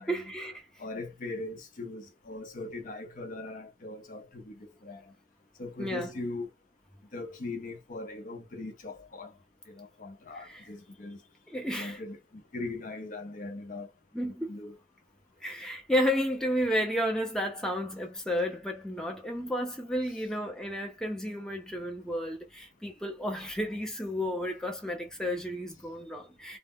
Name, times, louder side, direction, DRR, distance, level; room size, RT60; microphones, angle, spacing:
voice 1, 0.1-0.6 5.8-6.1 10.3-10.7 11.5-12.0 14.1-14.6 15.4-26.6, equal, 5° left, 0.5 m, -32 dB
voice 2, 0.8-5.1 5.6-6.5 7.1-9.3 9.7-11.2 11.7-13.9 14.2-14.8, left 2 dB, 50° left, 0.6 m, -40 dB
2.1 x 2.0 x 3.5 m
head